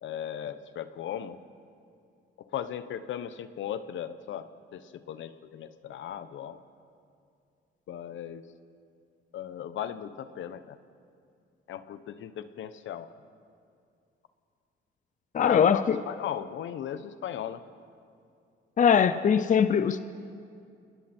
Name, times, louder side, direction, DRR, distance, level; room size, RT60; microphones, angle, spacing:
voice 1, 0.0-1.4 2.5-4.5 4.7-6.6 7.9-8.4 9.3-10.8 11.7-13.1 15.4-17.6, left 10 dB, 75° left, 12 dB, 1.0 m, -36 dB
voice 2, 15.3-16.0 18.8-20.0, left 7 dB, 40° left, 12 dB, 0.7 m, -22 dB
29.0 x 21.0 x 4.5 m, 2.4 s
cardioid pair, 90°, 20 cm